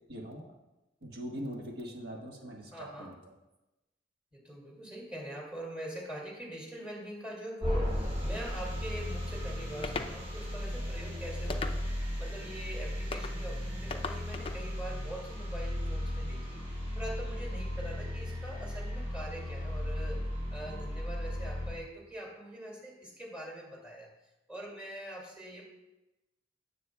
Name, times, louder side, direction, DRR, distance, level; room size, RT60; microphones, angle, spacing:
voice 1, 0.1-0.5 1.0-3.2, equal, 60° right, -1 dB, 1.5 m, -42 dB
voice 2, 2.7-3.1 4.3-20.2 20.5-24.1 24.5-25.7, right 1 dB, 5° right, -3 dB, 2.4 m, -43 dB
sound 1, 7.6-21.7, left 1 dB, 35° right, 2.9 m, -36 dB
sound 2, 9.8-10.1 11.5-12.1 13.1-13.4 13.9-14.6, left 3 dB, 30° left, 0.5 m, -37 dB
17.0 x 7.3 x 2.3 m, 1.0 s
head